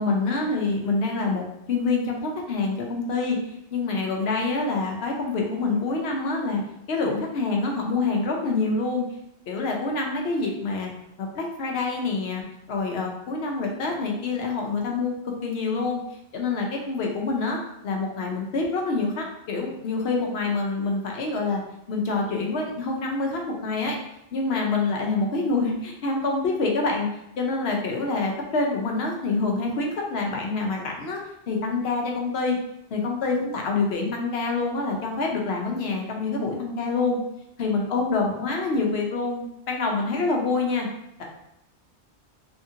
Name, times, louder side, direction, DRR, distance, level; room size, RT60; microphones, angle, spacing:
voice 1, 0.0-3.4 3.7-6.6 6.9-9.0 9.5-10.9 11.2-12.4 12.7-16.0 16.3-17.6 17.8-21.6 21.9-24.0 24.3-27.1 27.4-31.2 31.5-32.6 32.9-37.2 37.6-40.9, left 3 dB, 65° left, 0 dB, 0.8 m, -26 dB
2.8 x 2.5 x 2.7 m, 0.82 s
omnidirectional pair, 1.2 m